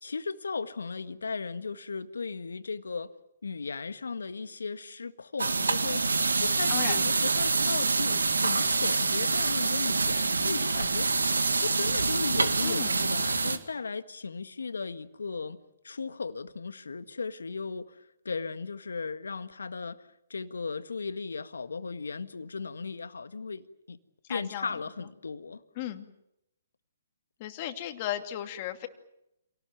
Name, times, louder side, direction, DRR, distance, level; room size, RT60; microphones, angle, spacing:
voice 1, 0.0-3.1 3.4-15.6 15.8-24.0 24.3-25.6, left 4 dB, 80° left, 1.6 m, -36 dB
sound 1, 5.4-13.6, right 3 dB, 85° right, 2.1 m, -26 dB
voice 2, 6.7-7.1 12.6-12.9 24.3-24.7 25.8-26.1 27.4-28.9, left 12 dB, 40° left, 2.6 m, -35 dB
27.5 x 18.5 x 9.3 m
hypercardioid pair, 135°, 0 cm